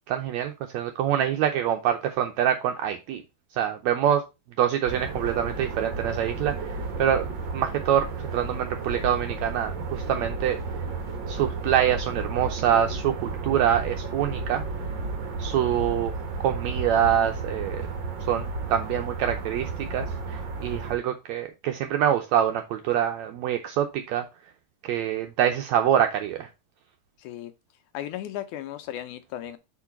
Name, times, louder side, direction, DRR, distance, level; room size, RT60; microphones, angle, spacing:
voice 1, 0.1-3.2 3.5-4.2 4.6-7.3 7.5-10.6 11.3-14.6 15.4-16.1 16.4-17.8 18.3-24.3 24.8-26.5, right 10 dB, 85° right, 1.6 m, -25 dB
sound 1, 4.8-21.0, right 3 dB, 60° right, 1.2 m, -33 dB
voice 2, 27.2-27.5 27.9-29.6, left 12 dB, 80° left, 1.8 m, -35 dB
4.7 x 4.5 x 5.6 m
omnidirectional pair, 3.7 m